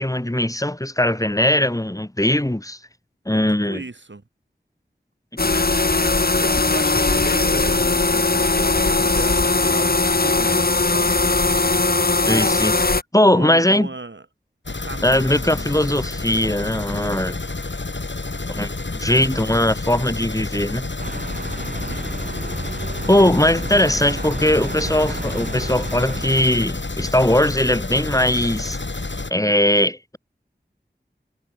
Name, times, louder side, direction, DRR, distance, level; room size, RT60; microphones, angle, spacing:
voice 1, 0.0-2.8 3.3-3.8 5.4-5.7 12.3-13.9 15.0-17.4 18.5-20.9 23.1-28.8 29.3-30.2, left 1 dB, 20° left, 1.8 m, -20 dB
voice 2, 3.7-4.2 6.0-6.2 6.4-11.2 13.3-14.3 14.8-16.0 17.2-17.4 21.7-22.1 23.4-23.6, right 3 dB, 80° right, 6.0 m, -36 dB
sound 1, 5.4-13.0, left 3 dB, 55° left, 1.5 m, -19 dB
sound 2, 14.6-29.3, left 3 dB, 80° left, 5.2 m, -29 dB
sound 3, 21.0-26.4, right 2 dB, 50° right, 2.3 m, -32 dB
wide cardioid pair, 40°, 19 cm